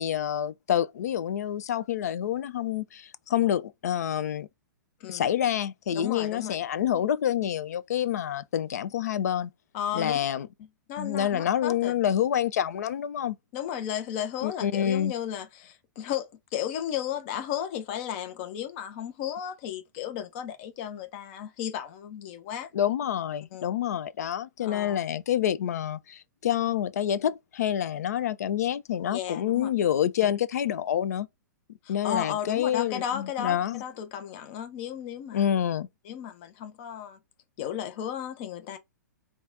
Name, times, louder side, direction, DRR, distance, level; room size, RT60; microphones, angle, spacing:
voice 1, 0.0-4.5 5.1-9.5 9.9-10.5 11.0-13.4 14.4-15.1 22.7-31.3 31.9-33.8 35.3-35.9, left 10 dB, 55° left, 0.4 m, -27 dB
voice 2, 5.9-6.6 9.7-10.2 10.9-11.9 13.5-22.7 23.5-23.7 24.6-25.0 29.1-29.7 31.8-35.4 36.1-37.2 37.6-38.8, left 9 dB, 40° left, 0.8 m, -34 dB
4.0 x 2.4 x 3.8 m
figure-of-eight pair, 110°, 10 cm